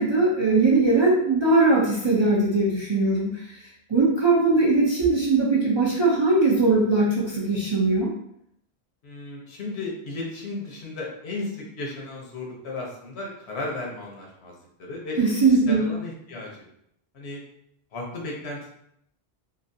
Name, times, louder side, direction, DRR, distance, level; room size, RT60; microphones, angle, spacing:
voice 1, 0.0-3.6 3.9-8.1 15.2-15.9, right 3 dB, 40° right, -6 dB, 0.4 m, -20 dB
voice 2, 9.0-15.2 15.5-16.6 17.1-17.4 17.9-18.7, left 2 dB, 80° left, -2 dB, 1.1 m, -35 dB
3.0 x 2.5 x 2.6 m, 0.73 s
omnidirectional pair, 1.1 m